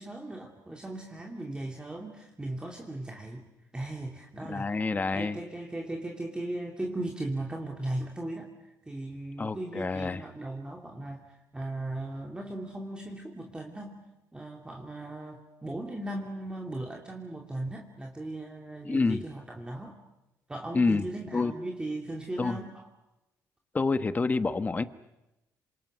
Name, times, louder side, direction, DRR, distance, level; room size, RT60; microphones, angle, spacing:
voice 1, 0.0-3.5 3.7-4.8 5.1-8.5 8.9-11.2 11.5-14.0 14.3-20.0 20.5-22.9, right 1 dB, 15° right, 0 dB, 2.9 m, -37 dB
voice 2, 4.4-5.4 9.4-10.2 18.8-19.2 20.7-21.1 21.3-21.5 22.4-22.6 23.7-24.8, left 3 dB, 25° left, 11 dB, 1.3 m, -27 dB
28.0 x 26.5 x 6.2 m, 0.95 s
cardioid pair, 110°, 7 cm